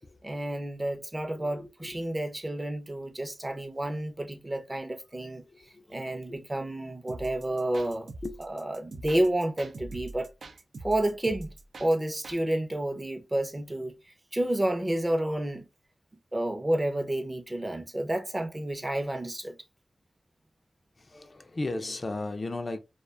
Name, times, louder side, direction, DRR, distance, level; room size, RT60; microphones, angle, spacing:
voice 1, 0.2-5.4 5.9-8.1 8.4-10.3 10.8-11.5 11.8-13.9 14.3-15.6 16.3-19.6, right 1 dB, 25° right, 0.5 m, -30 dB
voice 2, 1.2-2.2 3.5-3.6 3.9-4.4 5.5-6.4 8.2-8.4 21.0-22.8, left 2 dB, 40° left, 0.3 m, -37 dB
sound 1, 7.1-12.4, right 2 dB, 85° right, 0.4 m, -43 dB
2.4 x 2.2 x 2.3 m
wide cardioid pair, 75°, 0 cm